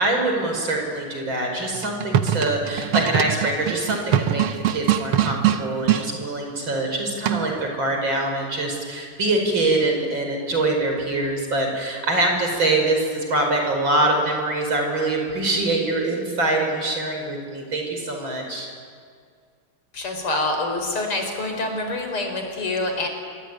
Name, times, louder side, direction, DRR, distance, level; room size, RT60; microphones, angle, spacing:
voice 1, 0.0-18.7, right 2 dB, 60° right, 2 dB, 6.0 m, -24 dB
sound 1, 1.7-6.1 7.3-7.7, right 11 dB, 85° right, 1.9 m, -22 dB
voice 2, 19.9-23.1, left 2 dB, 85° left, 4 dB, 5.5 m, -26 dB
25.5 x 23.5 x 9.5 m, 2.1 s
omnidirectional pair, 2.4 m